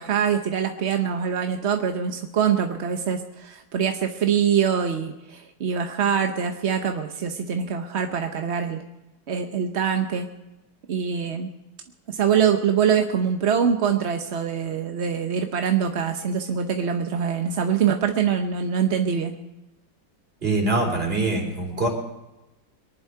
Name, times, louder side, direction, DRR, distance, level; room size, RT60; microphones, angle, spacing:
voice 1, 0.0-8.8 9.3-10.3 10.9-11.5 12.1-19.3, right 7 dB, 50° right, 5 dB, 0.9 m, -24 dB
voice 2, 20.4-21.9, right 2 dB, 30° right, 0 dB, 4.0 m, -23 dB
23.5 x 11.0 x 4.7 m, 0.98 s
omnidirectional pair, 2.2 m